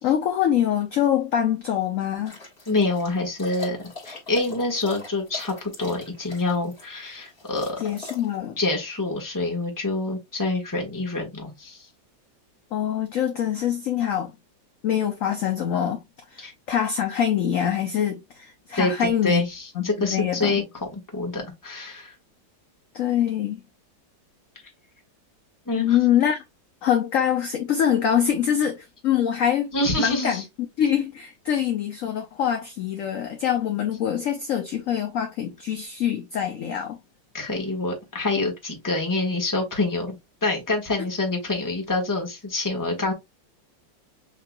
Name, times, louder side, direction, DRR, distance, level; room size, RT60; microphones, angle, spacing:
voice 1, 0.0-2.4 7.8-8.6 12.7-14.3 14.8-16.0 16.3-19.4 19.8-20.6 22.9-23.6 25.7-26.4 26.8-29.7 30.0-30.4 30.8-37.0, left 9 dB, 65° left, 0.8 m, -24 dB
sound 1, 2.3-8.4, left 3 dB, 30° left, 1.8 m, -42 dB
voice 2, 2.7-3.8 4.0-7.8 8.6-11.9 16.4-16.5 18.8-20.6 20.9-22.1 25.7-26.0 29.7-30.4 37.3-43.1, left 2 dB, 10° left, 1.1 m, -26 dB
6.6 x 2.8 x 2.2 m
omnidirectional pair, 2.0 m